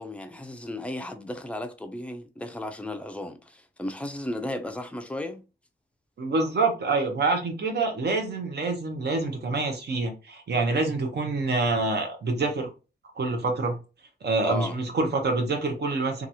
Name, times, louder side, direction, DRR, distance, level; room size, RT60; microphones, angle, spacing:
voice 1, 0.0-5.4 14.4-14.8, left 1 dB, 5° left, 0.4 m, -34 dB
voice 2, 6.2-12.7 13.2-13.8 14.2-16.3, right 3 dB, 65° right, 0.7 m, -26 dB
2.8 x 2.3 x 2.7 m
wide cardioid pair, 130°, 19 cm